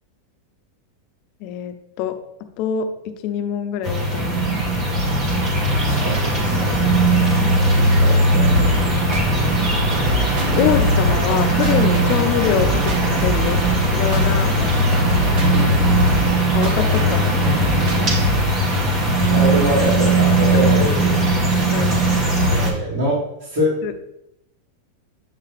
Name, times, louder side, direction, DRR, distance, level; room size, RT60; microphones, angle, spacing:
voice 1, 1.4-2.2 2.6-2.9 3.2-4.6 10.6-13.6 13.9-14.7 16.5-17.2 21.7-22.0 23.8-23.9, left 9 dB, 40° left, 8 dB, 0.6 m, -24 dB
sound 1, 3.8-22.7, right 1 dB, 25° right, 1.1 m, -18 dB
voice 2, 5.8-6.9 7.7-8.6 19.2-21.2 22.4-23.8, equal, 65° right, -8 dB, 2.5 m, -24 dB
sound 2, 8.5-18.5, right 2 dB, 45° right, 1.1 m, -26 dB
7.3 x 2.8 x 5.0 m, 0.82 s
supercardioid pair, 165°, 0 cm